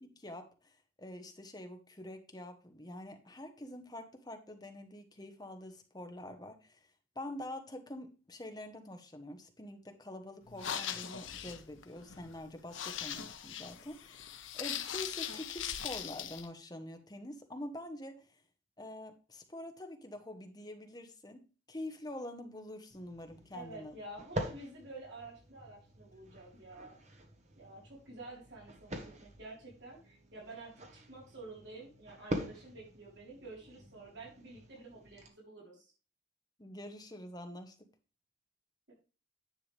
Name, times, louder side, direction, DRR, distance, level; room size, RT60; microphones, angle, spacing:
voice 1, 0.0-6.8 7.1-18.2 18.8-24.0 36.6-37.7, left 1 dB, 20° left, 6 dB, 1.1 m, -46 dB
sound 1, 10.5-16.5, left 9 dB, 80° left, 0.8 m, -40 dB
sound 2, 22.9-35.3, equal, 35° right, 1.3 m, -45 dB
voice 2, 23.5-27.0 27.6-35.9 38.9-39.0, right 2 dB, 60° right, -3 dB, 3.8 m, -50 dB
10.0 x 7.0 x 3.3 m, 0.35 s
head